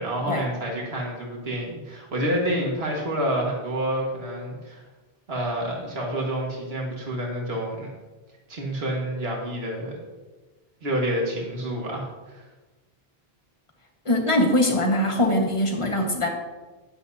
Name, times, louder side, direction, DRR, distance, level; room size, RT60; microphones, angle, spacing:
voice 1, 0.0-4.8 5.3-7.9 8.5-10.0 10.8-12.4, right 1 dB, 80° right, -1 dB, 1.9 m, -28 dB
voice 2, 14.0-16.3, left 1 dB, 30° left, 2 dB, 1.5 m, -22 dB
13.0 x 10.5 x 2.7 m, 1.2 s
omnidirectional pair, 1.0 m